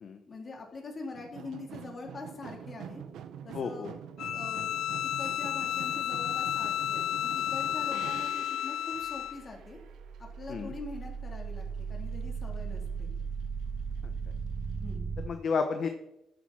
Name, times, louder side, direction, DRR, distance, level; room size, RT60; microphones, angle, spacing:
voice 1, 0.3-3.0 3.4-3.9 4.3-4.7 5.0-9.8 10.2-13.1 14.7-15.1, left 3 dB, 40° left, 1 dB, 3.8 m, -44 dB
sound 1, 1.1-11.2 11.4-12.2 12.6-12.7, right 8 dB, 80° right, 1.1 m, -46 dB
voice 2, 3.5-3.9 7.9-8.0 10.5-10.7 15.2-15.9, left 5 dB, 55° left, 7 dB, 1.2 m, -32 dB
Bowed string instrument, 4.2-9.4, left 12 dB, 75° left, 0.4 m, -32 dB
sound 2, 9.1-15.3, right 5 dB, 45° right, 1.6 m, -37 dB
13.5 x 9.5 x 4.4 m, 0.85 s
cardioid pair, 90°, 0 cm